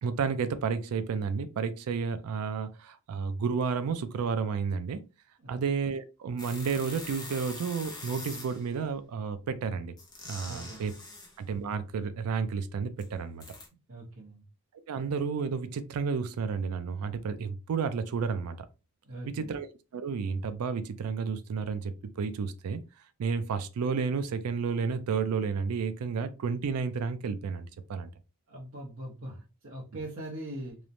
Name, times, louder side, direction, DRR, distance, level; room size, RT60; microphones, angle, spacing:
voice 1, 0.0-5.0 5.5-10.0 10.3-10.9 11.4-13.4 14.9-18.6 19.3-19.7 19.9-22.8 23.2-28.1, right 5 dB, 90° right, 0.4 m, -31 dB
sound 1, 6.4-8.7 10.0-11.4 13.0-13.1 13.4-13.7, left 2 dB, 20° left, 0.4 m, -43 dB
voice 2, 10.4-10.8 13.9-14.4 19.0-19.6 28.5-30.8, right 1 dB, 65° right, 0.9 m, -41 dB
3.0 x 2.0 x 2.5 m
head